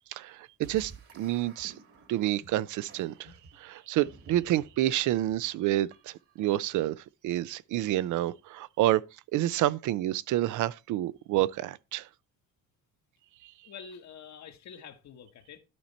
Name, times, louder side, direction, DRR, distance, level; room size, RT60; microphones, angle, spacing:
voice 1, 0.1-1.7 2.1-3.3 3.6-9.0 9.3-12.1, right 14 dB, 80° right, 0.5 m, -28 dB
sound 1, 0.6-6.4, right 4 dB, 50° right, 1.5 m, -54 dB
voice 2, 13.6-15.6, left 7 dB, 65° left, 1.4 m, -47 dB
11.5 x 4.4 x 4.1 m
cardioid pair, 90°, 30 cm